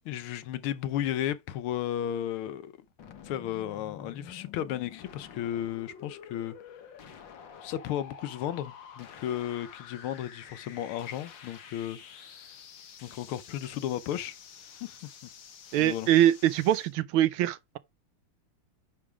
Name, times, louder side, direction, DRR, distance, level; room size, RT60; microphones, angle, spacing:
voice 1, 0.0-2.7 3.2-6.5 7.6-12.5 13.0-14.4 14.8-15.1 15.8-16.1, left 11 dB, 80° left, 1.5 m, -34 dB
sound 1, 3.0-16.9, left 7 dB, 60° left, 1.8 m, -49 dB
voice 2, 15.7-17.8, right 12 dB, 80° right, 1.4 m, -23 dB
9.9 x 3.3 x 4.8 m
omnidirectional pair, 2.4 m